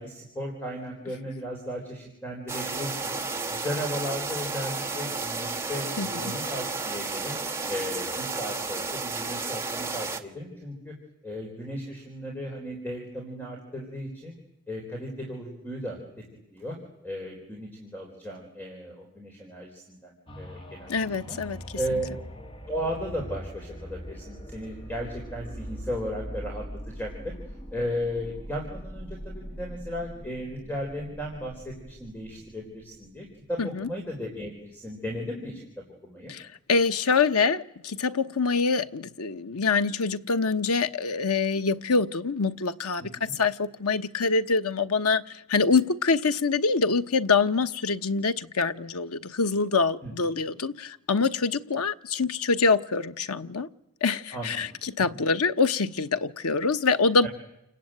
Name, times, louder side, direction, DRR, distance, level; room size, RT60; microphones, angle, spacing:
voice 1, 0.0-3.2 3.5-7.3 7.7-10.9 11.2-14.3 14.7-16.0 16.5-16.8 17.0-21.4 21.7-22.1 22.7-27.3 27.7-35.6 36.0-36.3 43.0-43.3 50.0-50.1 54.3-54.6 57.2-57.3, equal, 10° left, 4.3 m, -35 dB
sound 1, 2.5-10.2, right 3 dB, 10° right, 1.5 m, -32 dB
voice 2, 6.0-6.4 20.9-21.6 33.6-33.9 36.3-53.7 54.0-57.3, left 4 dB, 85° left, 1.1 m, -25 dB
sound 2, 20.3-33.9 34.4-34.5, equal, 25° left, 2.1 m, -42 dB
29.0 x 20.5 x 9.1 m
head